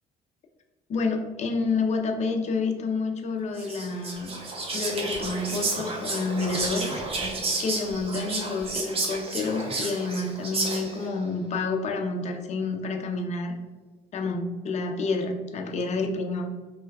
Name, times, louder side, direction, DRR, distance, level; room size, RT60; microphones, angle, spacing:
voice 1, 0.9-4.4 4.7-7.0 7.6-13.6 14.1-16.5, left 3 dB, 40° left, 3 dB, 0.5 m, -29 dB
Whispering, 3.5-11.1, right 3 dB, 35° right, 0.7 m, -31 dB
3.2 x 2.2 x 3.2 m, 1.3 s
cardioid pair, 110°, 17 cm